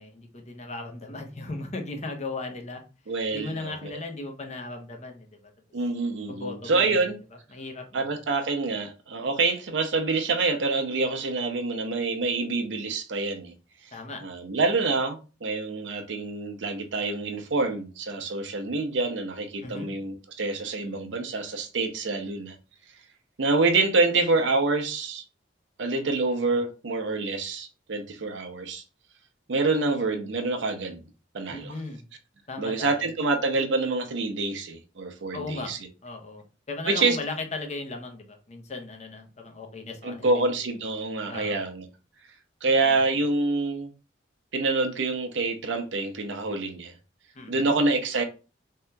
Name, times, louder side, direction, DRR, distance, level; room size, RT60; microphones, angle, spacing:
voice 1, 0.0-2.8 3.3-5.3 6.3-7.0 7.5-8.1 13.9-14.2 19.6-19.9 31.5-32.0 32.5-33.1 35.3-35.7 36.0-40.4 41.3-41.6 47.3-47.7, left 3 dB, 40° left, 0.7 m, -37 dB
voice 2, 3.1-3.9 5.7-7.2 7.9-13.5 14.2-22.6 23.4-25.2 25.8-28.8 29.5-31.0 31.3-31.7 32.6-35.8 36.9-37.2 40.0-41.9 42.6-43.9 44.5-46.9 47.5-48.2, right 3 dB, 80° right, 0.6 m, -26 dB
3.4 x 2.7 x 2.2 m
head